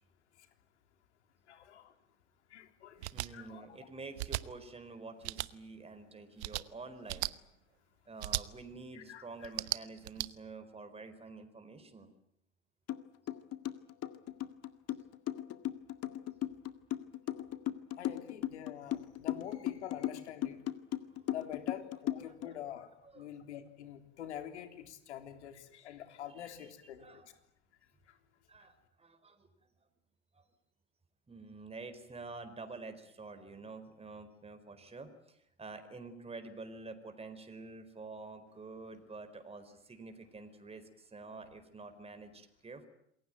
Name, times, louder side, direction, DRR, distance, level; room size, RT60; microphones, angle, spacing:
voice 1, 1.5-1.9 2.5-3.0 3.3-3.7 8.9-9.5 18.0-20.6 21.3-22.9 23.1-27.3, left 10 dB, 75° left, 7 dB, 3.5 m, -46 dB
sound 1, 3.0-3.3 4.2-4.4 5.2-5.5 6.4-6.6 7.1-7.3 8.2-8.4 9.4-10.3, right 17 dB, 70° right, 1.1 m, -36 dB
voice 2, 3.1-7.3 8.1-12.1 21.1-21.3 21.5-21.6 22.2-22.6 23.0-23.3 26.4-26.7 27.0-27.3 28.5-29.5 30.3-30.5 31.3-42.9, right 3 dB, 15° right, 8 dB, 4.6 m, -48 dB
sound 2, 12.9-13.0 13.3-22.5, left 13 dB, 45° left, 1.9 m, -36 dB
28.0 x 22.0 x 9.2 m, 0.75 s
hypercardioid pair, 75°, 34 cm